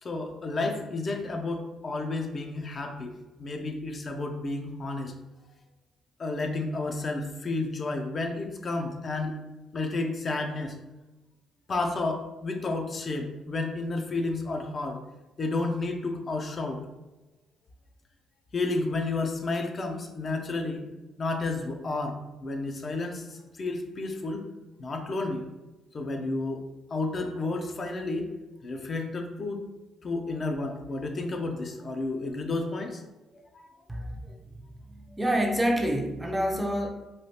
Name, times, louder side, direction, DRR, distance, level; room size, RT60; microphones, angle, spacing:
voice 1, 0.0-5.1 6.2-9.4 9.7-10.8 11.7-15.0 15.4-16.8 18.5-20.9 21.2-24.5 24.8-25.5 25.9-26.6 26.9-28.3 28.6-29.7 30.0-33.0 33.5-33.6, left 2 dB, 40° left, 3 dB, 0.5 m, -31 dB
voice 2, 33.9-34.5 34.9-36.9, equal, 10° right, 2 dB, 0.5 m, -28 dB
3.1 x 2.4 x 2.8 m, 1.0 s
cardioid pair, 90°, 0 cm